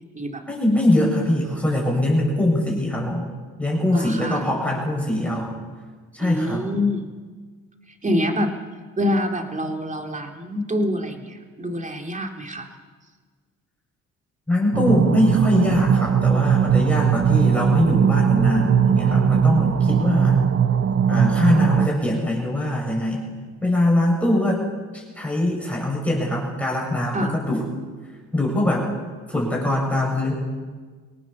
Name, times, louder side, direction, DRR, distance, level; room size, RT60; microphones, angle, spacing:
voice 1, 0.5-3.3 3.6-5.5 6.1-6.7 14.5-20.4 21.1-23.3 23.6-24.6 24.9-27.6 28.3-28.9 29.3-30.3, left 1 dB, 5° left, -3 dB, 7.9 m, -22 dB
voice 2, 3.9-4.5 6.2-7.1 8.0-8.5 9.0-12.7 27.1-27.4, left 1 dB, 25° right, 3 dB, 3.0 m, -26 dB
sound 1, 14.7-21.9, right 7 dB, 45° right, 1.0 m, -19 dB
24.5 x 18.0 x 7.3 m, 1.4 s
cardioid pair, 90°, 30 cm